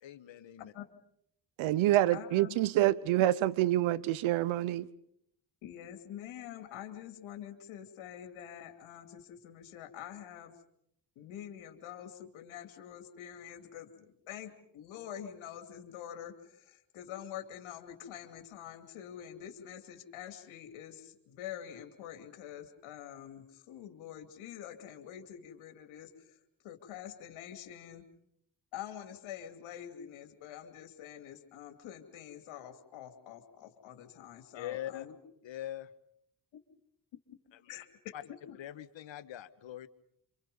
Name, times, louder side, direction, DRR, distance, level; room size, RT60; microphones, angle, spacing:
voice 1, 0.0-0.7 34.5-35.1 35.4-35.9 37.5-37.6 38.1-38.2 38.6-39.9, left 12 dB, 70° left, 1.5 m, -42 dB
voice 2, 1.6-4.9, right 14 dB, 85° right, 0.9 m, -27 dB
voice 3, 2.1-2.6 5.6-10.5 11.2-26.4 26.6-28.0 28.7-35.2 37.7-37.9 38.5-38.6, left 10 dB, 85° left, 2.7 m, -46 dB
27.0 x 26.0 x 5.5 m
supercardioid pair, 55°, 46 cm